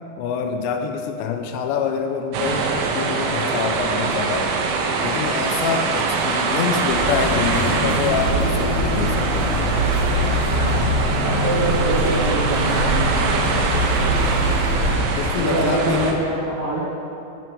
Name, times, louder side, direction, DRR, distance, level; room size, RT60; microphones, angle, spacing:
voice 1, 0.2-4.5 5.0-9.5 15.2-16.3, left 6 dB, 85° left, 4 dB, 2.8 m, -25 dB
sound 1, 2.3-16.1, right 4 dB, 85° right, 3.3 m, -23 dB
sound 2, 6.9-15.0, equal, 40° left, 2.7 m, -23 dB
voice 2, 11.2-13.0 13.7-13.8 15.3-16.8, right 3 dB, 70° right, -5 dB, 2.2 m, -25 dB
14.0 x 4.9 x 6.3 m, 2.7 s
omnidirectional pair, 5.3 m